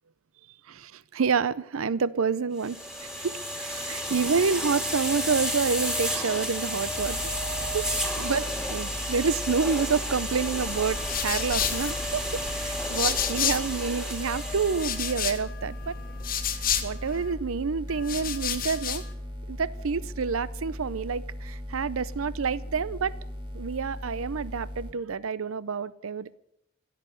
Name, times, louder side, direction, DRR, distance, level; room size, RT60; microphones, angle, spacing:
voice 1, 0.7-2.8 3.2-7.3 7.7-7.9 8.2-15.9 16.8-19.0 19.5-23.2 23.5-26.4, right 5 dB, 80° right, 19 dB, 0.6 m, -28 dB
sound 1, 2.6-15.3, equal, 5° right, 2.1 m, -32 dB
sound 2, 7.0-24.9, left 1 dB, 25° right, 2.0 m, -38 dB
sound 3, 10.7-13.9 14.2-17.3 17.9-19.1, left 9 dB, 40° left, 1.3 m, -32 dB
16.0 x 7.7 x 9.2 m, 0.80 s
head